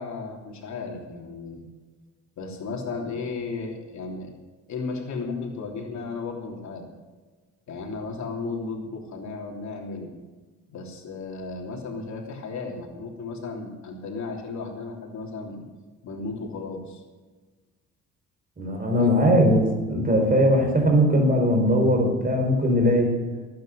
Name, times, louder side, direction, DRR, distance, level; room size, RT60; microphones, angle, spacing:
voice 1, 0.0-1.6 2.4-4.3 4.7-6.9 7.7-10.1 10.7-15.6 16.0-17.0 19.0-19.1, left 4 dB, 65° left, 1 dB, 3.3 m, -34 dB
voice 2, 18.6-23.2, equal, 30° right, 3 dB, 4.5 m, -20 dB
19.0 x 9.5 x 6.6 m, 1.3 s
cardioid pair, 90°, 30 cm